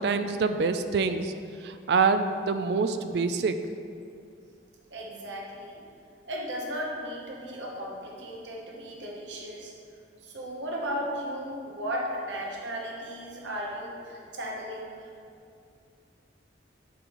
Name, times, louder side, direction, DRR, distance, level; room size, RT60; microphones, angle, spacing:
voice 1, 0.0-1.3 1.6-3.6, right 4 dB, 60° right, 9 dB, 0.3 m, -26 dB
voice 2, 4.9-5.8 6.2-9.7 10.2-15.1, equal, 80° right, -2 dB, 1.0 m, -35 dB
7.4 x 5.4 x 3.0 m, 2.4 s
head